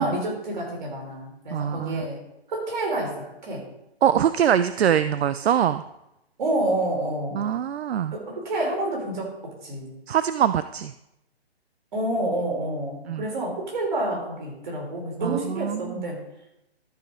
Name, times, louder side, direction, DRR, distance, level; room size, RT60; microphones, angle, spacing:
voice 1, 0.0-2.2 2.5-3.7 6.4-7.5 8.1-10.0 11.9-16.2, right 1 dB, 45° right, -1 dB, 3.6 m, -28 dB
voice 2, 1.5-2.1 4.0-5.8 7.3-8.2 10.1-10.9 13.1-13.3 15.2-15.9, right 9 dB, 75° right, 13 dB, 0.5 m, -23 dB
13.0 x 5.0 x 5.1 m, 0.87 s
hypercardioid pair, 160°, 32 cm